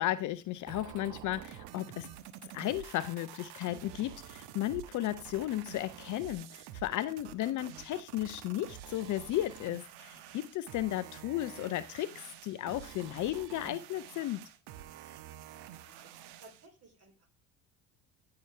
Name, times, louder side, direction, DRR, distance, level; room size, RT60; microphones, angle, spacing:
voice 1, 0.0-2.1 2.4-14.5, left 14 dB, 40° left, 0.6 m, -34 dB
sound 1, 0.7-16.7, right 11 dB, 50° right, 1.3 m, -49 dB
voice 2, 15.7-17.3, right 2 dB, 30° right, 4.2 m, -58 dB
15.5 x 5.8 x 3.3 m
figure-of-eight pair, 60°, 48 cm